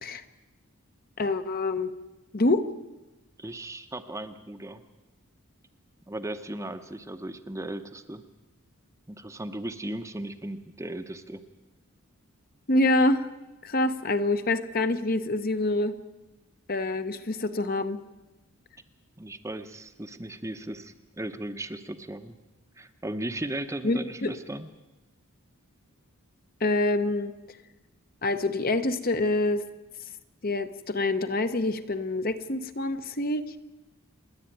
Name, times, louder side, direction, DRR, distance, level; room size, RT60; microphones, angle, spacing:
voice 1, 1.2-1.9 2.3-2.7 12.7-13.3 13.6-16.0 16.7-18.0 23.8-24.3 26.6-27.3 28.2-29.6 30.4-33.4, left 2 dB, 40° left, 9 dB, 0.9 m, -26 dB
voice 2, 3.4-4.8 6.1-8.2 9.1-11.4 19.2-22.4 22.8-24.7, right 1 dB, 15° right, 8 dB, 0.8 m, -36 dB
28.0 x 11.0 x 9.1 m, 1.1 s
head